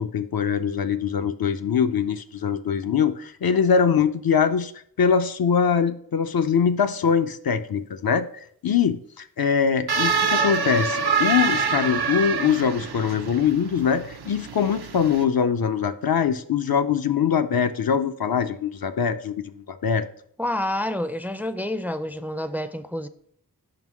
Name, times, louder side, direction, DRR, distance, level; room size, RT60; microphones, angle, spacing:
voice 1, 0.0-4.7 5.0-20.1, left 7 dB, 70° left, 0.5 m, -23 dB
sound 1, 9.9-15.2, right 5 dB, 85° right, 0.6 m, -26 dB
voice 2, 20.4-23.1, left 1 dB, 5° right, 0.4 m, -28 dB
5.4 x 3.9 x 6.0 m
wide cardioid pair, 45°, 37 cm